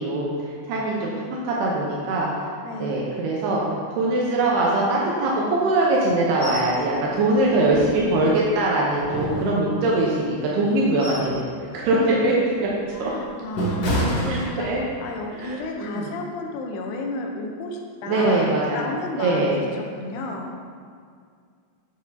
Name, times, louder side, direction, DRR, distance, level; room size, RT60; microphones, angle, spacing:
voice 1, 0.0-1.1 1.4-2.5 2.8-3.6 4.0-11.5 11.7-12.7 13.0-13.1 14.3-14.8 15.3-16.1 18.0-18.9 19.2-19.6, right 2 dB, 80° right, -4 dB, 2.7 m, -22 dB
voice 2, 2.6-3.1 7.5-8.5 13.0-14.7 15.0-20.6, left 2 dB, 85° left, 1 dB, 2.7 m, -33 dB
sound 1, 6.4-6.7 7.1-7.2 7.7-8.5 9.0-10.0 10.6-11.4 11.8-12.0 12.6-15.0 15.4-15.6, right 1 dB, 70° left, 1.5 m, -29 dB
8.6 x 6.4 x 2.7 m, 2.1 s
omnidirectional pair, 4.7 m